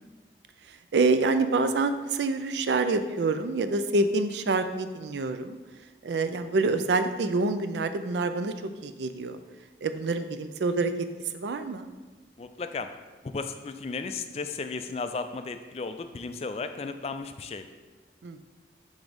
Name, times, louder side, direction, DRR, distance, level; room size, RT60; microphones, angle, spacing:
voice 1, 0.9-5.6 6.0-8.5 8.8-9.4 9.8-10.9 11.3-11.9 18.2-18.4, right 3 dB, 80° right, 9 dB, 0.4 m, -26 dB
voice 2, 12.4-12.9 13.2-17.7, left 4 dB, 35° left, 8 dB, 0.3 m, -34 dB
6.1 x 3.6 x 5.1 m, 1.3 s
head